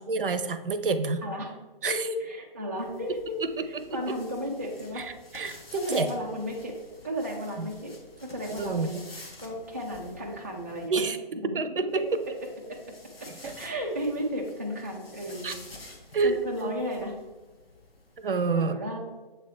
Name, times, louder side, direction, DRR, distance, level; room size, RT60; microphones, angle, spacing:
voice 1, 0.1-1.2 1.8-2.1 3.4-4.0 5.0-5.1 5.3-6.1 7.6-7.7 8.6-9.0 10.9-11.2 11.5-12.0 13.4-13.5 15.4-15.5 16.1-16.4 18.2-18.8, right 4 dB, 65° right, 11 dB, 0.6 m, -28 dB
voice 2, 1.2-1.5 1.9-3.4 3.9-5.0 5.7-6.8 7.0-7.9 8.2-9.0 9.4-11.0 12.7-12.8 13.6-15.6 16.2-17.1 18.5-19.0, equal, 15° right, -4 dB, 0.3 m, -33 dB
sound 1, 2.8-10.9 11.9-18.4, left 2 dB, 90° left, 1.4 m, -50 dB
7.3 x 3.4 x 4.3 m, 1.2 s
figure-of-eight pair, 150°, 29 cm